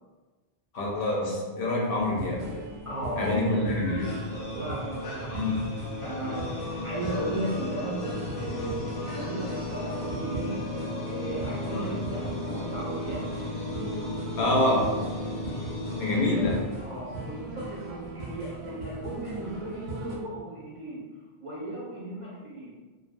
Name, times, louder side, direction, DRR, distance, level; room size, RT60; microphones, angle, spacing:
voice 1, 0.7-2.5 3.2-4.2 5.3-5.7 11.7-11.9 14.4-15.0 16.0-16.6, left 1 dB, 70° left, -2 dB, 0.7 m, -26 dB
sound 1, 2.0-20.2, right 2 dB, 90° right, 0.8 m, -39 dB
voice 2, 2.8-3.4 4.5-5.4 6.0-10.6 11.0-13.3 16.0-16.4 16.8-21.1 21.4-22.8, right 1 dB, 40° right, -8 dB, 0.5 m, -36 dB
sound 2, 4.0-16.9, left 1 dB, 90° left, 1.0 m, -35 dB
2.3 x 2.2 x 2.5 m, 1.3 s
omnidirectional pair, 1.0 m